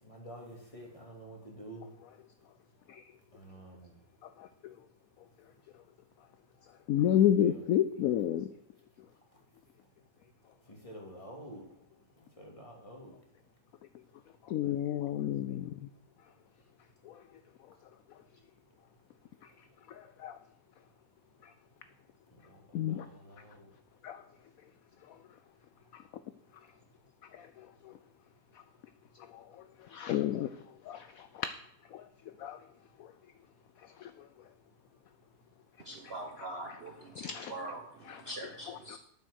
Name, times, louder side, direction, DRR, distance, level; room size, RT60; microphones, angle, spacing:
voice 1, 0.0-1.9 3.3-4.0 7.4-7.6 10.7-11.6 12.2-13.1 19.4-19.5 22.3-23.7, right 1 dB, 20° left, 0 dB, 2.4 m, -49 dB
voice 2, 4.4-4.7 6.9-8.5 14.5-15.9 17.1-17.2 19.9-20.4 21.4-21.5 22.7-23.1 24.0-24.2 25.9-26.0 27.3-27.5 27.8-27.9 29.3-29.4 29.9-30.5 30.9-31.5 31.9-32.1 32.4-32.6 33.0-33.1 34.0-34.1 36.0-36.8 37.2-37.5 38.1-38.2 38.7-39.0, left 10 dB, 70° left, 11 dB, 0.9 m, -31 dB
voice 3, 35.8-39.0, right 2 dB, 45° right, 4 dB, 0.9 m, -43 dB
9.2 x 7.7 x 6.4 m, 0.77 s
omnidirectional pair, 1.8 m